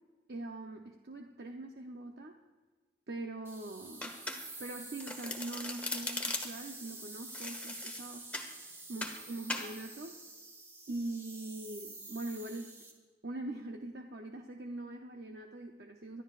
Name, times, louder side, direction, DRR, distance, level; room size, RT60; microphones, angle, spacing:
voice 1, 0.3-2.4 3.1-4.1 4.6-8.2 8.9-10.2 10.9-12.7 13.2-16.2, right 2 dB, 55° right, 3 dB, 0.7 m, -42 dB
sound 1, 3.4-12.9, right 2 dB, 15° right, 1.5 m, -49 dB
Domestic sounds home sounds, 4.0-4.7 5.0-6.7 7.3-8.5 9.0-9.2 9.5-9.7, left 2 dB, 10° left, 1.0 m, -39 dB
23.5 x 12.0 x 2.5 m, 1.4 s
head